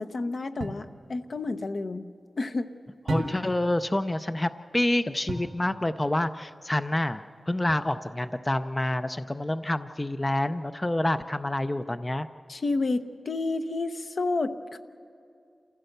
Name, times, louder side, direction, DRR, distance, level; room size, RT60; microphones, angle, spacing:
voice 1, 0.0-2.0 2.4-2.7 12.5-14.8, left 3 dB, 65° left, 7 dB, 0.9 m, -30 dB
sound 1, 0.6-0.9 3.1-3.7 5.3-5.6 7.7-8.2, right 2 dB, 85° right, 1.8 m, -35 dB
voice 2, 3.1-12.3, left 1 dB, 20° left, 10 dB, 0.5 m, -27 dB
27.5 x 15.5 x 6.7 m, 2.4 s
wide cardioid pair, 80°, 0 cm